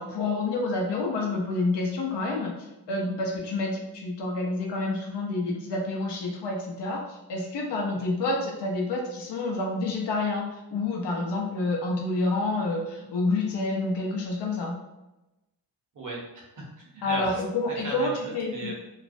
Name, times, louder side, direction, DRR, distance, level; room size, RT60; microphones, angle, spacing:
voice 1, 0.0-2.5 2.9-14.8 17.0-18.7, left 2 dB, 75° left, 0 dB, 0.7 m, -28 dB
voice 2, 15.9-18.7, right 1 dB, 45° right, -2 dB, 0.7 m, -37 dB
2.4 x 2.0 x 2.5 m, 0.97 s
wide cardioid pair, 135°, 42 cm